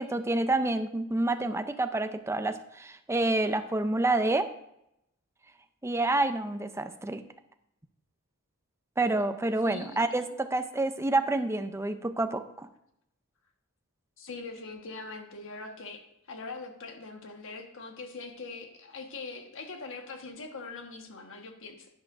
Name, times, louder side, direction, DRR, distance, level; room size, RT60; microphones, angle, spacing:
voice 1, 0.0-4.5 5.8-7.2 9.0-12.7, right 2 dB, 10° right, 9 dB, 0.5 m, -28 dB
voice 2, 9.6-10.0 14.2-21.9, left 3 dB, 60° left, 4 dB, 1.3 m, -42 dB
10.5 x 10.5 x 2.6 m, 0.80 s
head